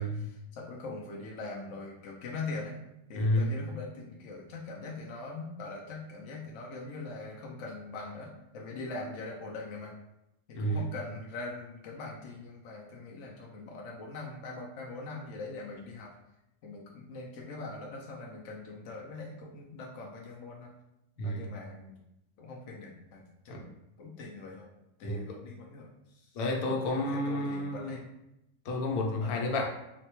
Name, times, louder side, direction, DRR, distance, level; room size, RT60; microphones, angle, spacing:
voice 1, 0.0-2.8 3.1-8.3 8.5-9.9 10.5-16.1 16.6-20.7 21.2-22.0 22.4-23.7 24.0-24.7 25.0-28.1 29.2-29.4, left 3 dB, 65° left, -2 dB, 0.8 m, -42 dB
voice 2, 3.1-3.5 10.5-10.8 21.2-21.5 23.5-23.6 25.1-25.2 26.4-28.0 28.6-29.6, left 1 dB, 85° left, 1 dB, 1.2 m, -30 dB
4.0 x 2.1 x 2.9 m, 0.88 s
omnidirectional pair, 1.5 m